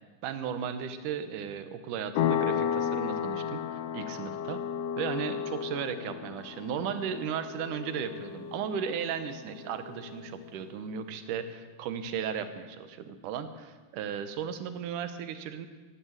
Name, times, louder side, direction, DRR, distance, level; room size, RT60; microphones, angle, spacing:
voice 1, 0.2-4.6 5.0-15.7, right 7 dB, 85° right, 10 dB, 2.5 m, -35 dB
sound 1, 2.2-10.5, left 9 dB, 75° left, 1.5 m, -34 dB
15.0 x 11.0 x 8.0 m, 1.4 s
omnidirectional pair, 3.6 m